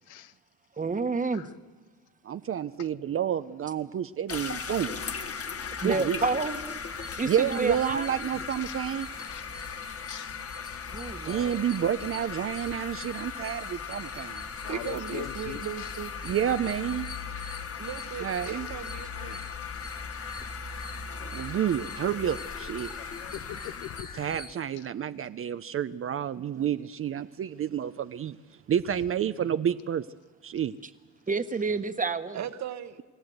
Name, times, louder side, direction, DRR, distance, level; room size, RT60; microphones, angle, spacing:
voice 1, 0.8-1.5 5.8-6.6 7.0-8.1 10.9-11.6 30.8-30.9 31.3-32.5, right 4 dB, 25° right, 1.3 m, -30 dB
voice 2, 2.2-5.0 5.8-6.2 7.2-9.1 11.3-14.4 16.2-17.1 18.2-18.7 21.3-23.0 24.2-28.4 28.7-30.1 30.4-30.7, right 9 dB, 45° right, 0.6 m, -29 dB
sound 1, 4.3-24.0, left 6 dB, 50° left, 1.7 m, -38 dB
sound 2, 6.9-24.6, left 3 dB, 30° left, 2.1 m, -47 dB
voice 3, 8.6-8.9 9.2-9.5 10.1-10.4 14.6-16.0 18.0-18.1 18.4-18.5 22.6-22.7 23.0-24.2 24.8-24.9, left 13 dB, 90° left, 0.8 m, -42 dB
voice 4, 14.7-16.1 17.8-19.4 26.3-26.7 32.3-33.0, right 9 dB, 65° right, 1.3 m, -37 dB
28.0 x 14.0 x 7.9 m
cardioid pair, 90°, 30 cm